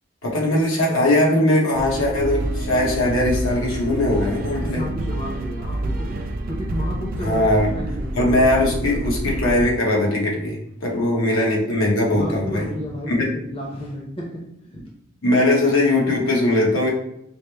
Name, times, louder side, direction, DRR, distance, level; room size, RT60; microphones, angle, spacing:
voice 1, 0.2-4.8 7.2-7.7 8.1-12.6 13.1-13.3 15.2-16.9, left 1 dB, 80° left, -3 dB, 1.2 m, -20 dB
sound 1, 1.7-9.7, right 1 dB, 45° right, 0.3 m, -28 dB
voice 2, 4.6-6.2 6.5-8.2 8.8-9.4 10.8-11.2 12.1-14.9, equal, 25° left, -2 dB, 0.7 m, -33 dB
4.9 x 2.1 x 3.3 m, 0.76 s
head